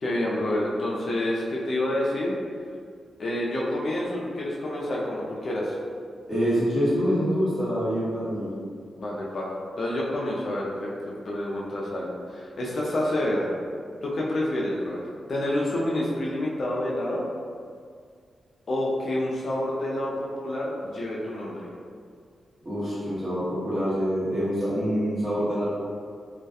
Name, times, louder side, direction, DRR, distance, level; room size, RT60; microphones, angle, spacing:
voice 1, 0.0-2.3 3.2-5.8 9.0-9.5 9.8-10.9 11.3-13.5 14.0-15.0 15.3-17.2 18.7-21.7, left 1 dB, 50° left, -4 dB, 0.4 m, -28 dB
voice 2, 6.3-8.5 22.6-25.6, equal, 25° right, -11 dB, 1.0 m, -25 dB
2.2 x 2.1 x 2.7 m, 2.1 s
wide cardioid pair, 140°, 0 cm